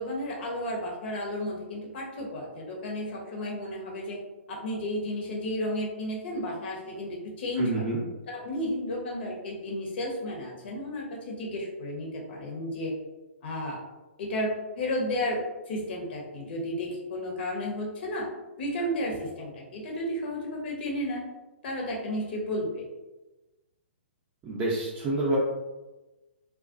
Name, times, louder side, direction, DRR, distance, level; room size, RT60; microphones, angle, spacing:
voice 1, 0.0-4.2 4.5-7.8 8.3-12.9 13.4-13.8 14.2-18.3 18.6-21.2 21.6-22.9, left 1 dB, 60° left, -2 dB, 0.9 m, -33 dB
voice 2, 7.6-8.0 24.4-25.4, right 2 dB, 20° right, -7 dB, 0.6 m, -28 dB
2.3 x 2.2 x 2.5 m, 1.1 s
hypercardioid pair, 125°, 7 cm